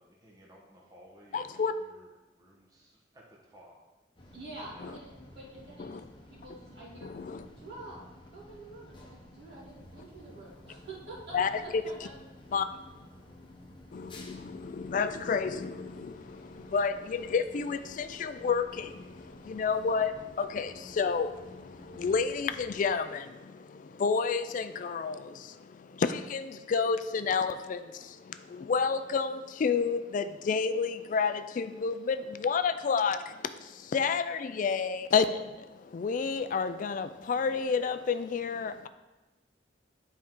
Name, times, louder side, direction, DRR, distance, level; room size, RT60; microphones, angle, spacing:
voice 1, 0.0-1.5 1.8-2.1 2.3-3.7 4.7-4.9, equal, 20° right, -3 dB, 1.0 m, -56 dB
voice 2, 1.3-1.7 4.8-4.9 5.8-5.9 7.2-7.4 11.3-11.8 12.5-12.6 13.9-14.4 14.8-15.7 16.0-16.1 16.7-18.9 19.5-20.7 21.0-21.3 22.0-23.2 24.0-25.2 26.1-27.8 28.7-33.2 33.9-35.2 35.9-38.9, left 5 dB, 45° left, 11 dB, 0.3 m, -29 dB
sound 1, 4.2-22.9, left 1 dB, 25° left, 0.9 m, -52 dB
voice 3, 4.3-5.1 5.3-6.0 6.3-7.1 7.6-8.0 8.3-12.1, right 2 dB, 60° right, -6 dB, 2.7 m, -47 dB
10.0 x 4.5 x 3.7 m, 1.1 s
head